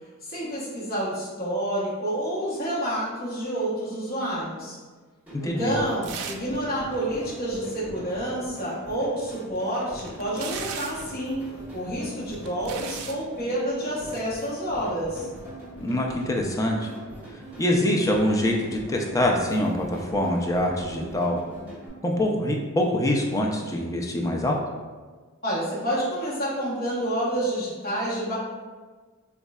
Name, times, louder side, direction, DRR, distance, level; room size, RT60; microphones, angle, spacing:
voice 1, 0.2-4.8 5.4-11.4 11.7-15.3 25.4-28.3, right 1 dB, 45° left, -8 dB, 1.0 m, -29 dB
sound 1, 5.3-21.9, right 1 dB, 5° right, 1.2 m, -42 dB
voice 2, 5.4-5.7 15.8-16.9 17.6-21.4 22.0-24.6, left 1 dB, 15° left, 0 dB, 0.3 m, -24 dB
sound 2, 6.0-6.6 6.8-6.9 9.3-11.1 12.0-13.2 14.0-14.3, right 7 dB, 85° right, 0.3 m, -38 dB
3.6 x 3.0 x 2.3 m, 1.4 s
head